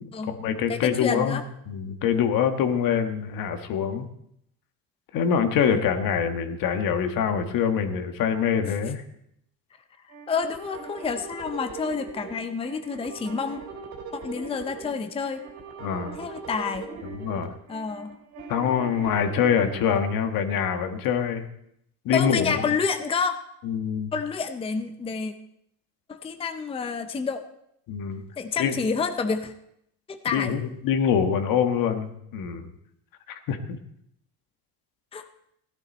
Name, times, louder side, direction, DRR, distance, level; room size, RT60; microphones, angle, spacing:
voice 1, 0.0-4.1 5.1-9.0 15.8-16.2 17.0-17.5 18.5-21.5 22.0-22.6 23.6-24.1 27.9-28.2 28.6-28.7 30.3-32.7 33.3-33.8, left 7 dB, 70° left, 7 dB, 1.4 m, -25 dB
voice 2, 0.7-1.4 5.6-5.8 10.3-13.6 14.1-15.4 16.2-16.9 17.7-18.2 22.1-23.3 24.1-25.3 26.1-27.4 28.4-29.5 30.1-30.6 35.1-35.2, left 5 dB, 15° left, 8 dB, 0.6 m, -29 dB
sound 1, 10.1-20.0, right 4 dB, 85° right, 3.1 m, -40 dB
16.0 x 11.0 x 4.2 m, 0.74 s
cardioid pair, 140°, 35 cm